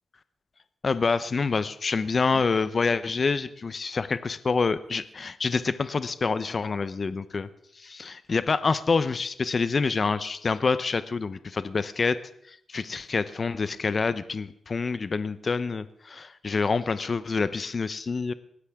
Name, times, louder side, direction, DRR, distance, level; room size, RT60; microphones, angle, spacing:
voice 1, 0.8-7.5 7.8-12.2 12.5-18.3, left 4 dB, 40° left, 14 dB, 0.8 m, -27 dB
20.0 x 16.0 x 3.7 m, 0.68 s
wide cardioid pair, 130°, 0 cm